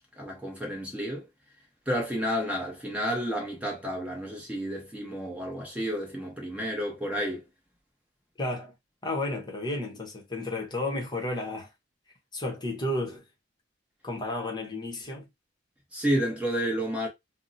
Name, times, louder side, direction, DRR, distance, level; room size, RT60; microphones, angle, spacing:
voice 1, 0.2-1.3 1.9-7.4 15.9-17.1, equal, 5° right, 0.8 m, -31 dB
voice 2, 8.4-8.7 9.0-11.7 12.3-13.2 14.0-15.3, left 2 dB, 20° left, 0.8 m, -32 dB
2.7 x 2.0 x 3.8 m
head